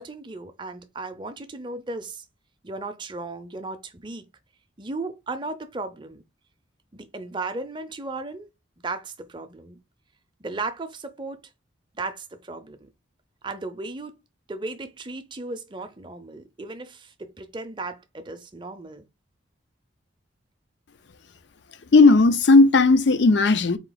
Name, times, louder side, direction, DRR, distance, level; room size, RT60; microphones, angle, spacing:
voice 1, 0.0-2.2 2.6-4.2 4.8-6.2 6.9-8.5 8.8-9.8 10.4-11.4 11.9-12.9 13.4-14.1 14.5-19.0, right 3 dB, 25° right, 0.5 m, -35 dB
voice 2, 21.9-23.8, left 3 dB, 60° left, 0.5 m, -15 dB
4.4 x 2.8 x 3.9 m
head